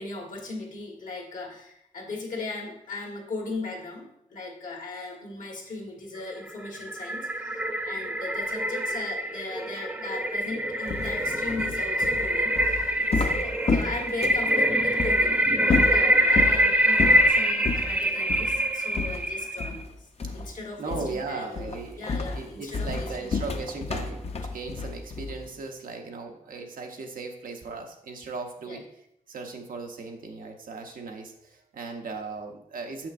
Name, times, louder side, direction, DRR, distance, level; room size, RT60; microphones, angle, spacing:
voice 1, 0.0-19.9 20.3-21.7 22.0-23.6 28.6-28.8, left 3 dB, 70° left, 0 dB, 1.4 m, -38 dB
sound 1, 6.4-19.7, equal, 10° right, 0.4 m, -25 dB
sound 2, 10.9-14.5 15.0-15.2 15.6-16.6 17.0-17.3 17.6-17.9 18.3-18.5 18.9-19.9 20.2-20.6 20.9-21.2 21.5-25.5, left 4 dB, 50° left, 0.6 m, -30 dB
voice 2, 11.0-11.6 18.9-19.0 20.2-20.3 20.8-28.8 29.3-33.1, right 4 dB, 90° right, 3 dB, 0.8 m, -38 dB
6.7 x 5.8 x 2.5 m, 0.78 s
wide cardioid pair, 110°, 14 cm